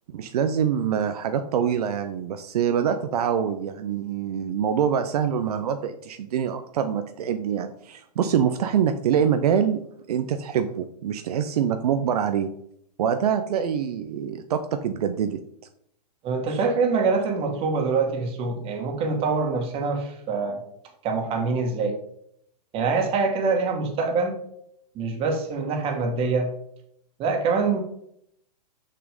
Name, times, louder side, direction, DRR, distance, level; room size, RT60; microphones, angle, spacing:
voice 1, 0.1-9.8 10.1-12.5 13.0-15.4, right 8 dB, 65° right, 8 dB, 0.8 m, -25 dB
voice 2, 16.2-20.6 21.0-22.0 22.7-24.3 25.0-26.5 27.2-27.8, right 4 dB, 25° right, 3 dB, 1.8 m, -24 dB
6.5 x 6.0 x 5.2 m, 0.72 s
hypercardioid pair, 140°, 21 cm